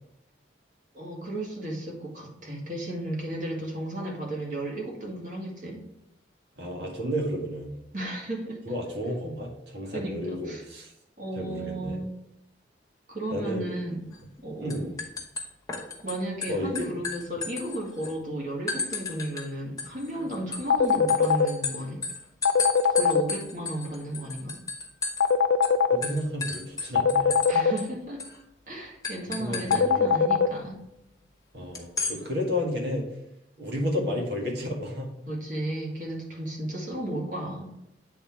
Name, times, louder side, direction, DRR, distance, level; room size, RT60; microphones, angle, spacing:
voice 1, 0.9-5.8 7.9-8.6 9.9-10.6 11.2-12.1 13.1-14.2 14.4-14.9 16.0-22.0 22.9-24.6 27.5-28.2 28.7-30.9 35.3-37.7, right 1 dB, 45° right, -2 dB, 2.1 m, -34 dB
voice 2, 6.6-7.7 8.7-10.9 11.3-12.0 13.3-13.7 14.6-15.0 16.5-16.9 25.9-27.4 29.4-30.1 31.5-33.1 33.6-35.1, equal, 65° right, -1 dB, 1.8 m, -32 dB
sound 1, 14.1-14.4 14.7-16.1 16.4-18.1 18.7-19.5 19.8-25.3 25.6-25.7 26.0-27.5 27.8-27.9 28.2-28.4 29.0-29.8 31.7-32.2, left 4 dB, 20° left, 0.9 m, -33 dB
sound 2, 20.7-21.5 22.4-23.2 25.2-26.0 26.9-27.7 29.7-30.5, left 7 dB, 75° left, 0.4 m, -20 dB
8.5 x 3.8 x 4.5 m, 0.82 s
head